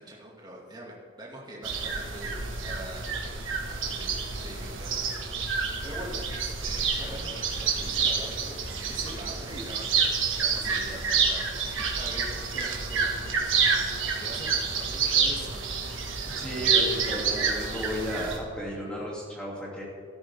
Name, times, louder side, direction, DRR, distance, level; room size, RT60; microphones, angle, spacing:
voice 1, 0.0-4.1 4.4-5.2 5.5-15.6, right 1 dB, 20° right, -4 dB, 2.3 m, -43 dB
sound 1, 1.6-18.4, right 5 dB, 75° right, 1.9 m, -28 dB
voice 2, 16.3-19.8, equal, 5° left, -5 dB, 2.9 m, -33 dB
13.0 x 12.5 x 3.7 m, 2.2 s
head